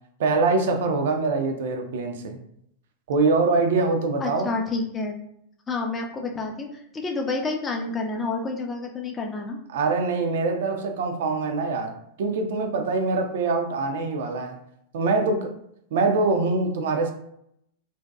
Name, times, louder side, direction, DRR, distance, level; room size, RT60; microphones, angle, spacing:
voice 1, 0.2-2.4 3.1-4.5 9.7-14.6 14.9-15.5 15.9-17.1, right 3 dB, 55° right, 5 dB, 0.4 m, -24 dB
voice 2, 4.2-5.2 5.7-9.6, left 3 dB, 20° left, 2 dB, 0.4 m, -29 dB
2.6 x 2.1 x 2.3 m, 0.72 s
figure-of-eight pair, 90°, 0 cm